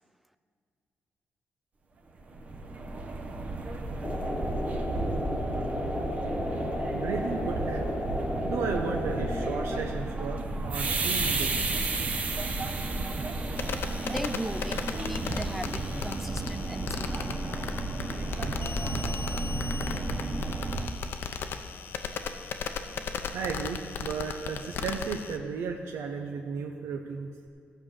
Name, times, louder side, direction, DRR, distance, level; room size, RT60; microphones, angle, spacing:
sound 1, 2.2-20.9, right 2 dB, 35° right, 0.8 m, -32 dB
sound 2, 4.0-9.8, left 1 dB, 15° left, 1.3 m, -33 dB
voice 1, 6.9-7.9 8.2-11.6 22.7-23.0 23.3-27.3, right 5 dB, 80° right, 3 dB, 0.8 m, -34 dB
sound 3, 13.6-25.4, left 6 dB, 60° left, 0.7 m, -36 dB
voice 2, 14.0-17.4, right 1 dB, 5° right, 11 dB, 0.4 m, -37 dB
15.0 x 5.2 x 7.4 m, 2.2 s
cardioid pair, 150°, 4 cm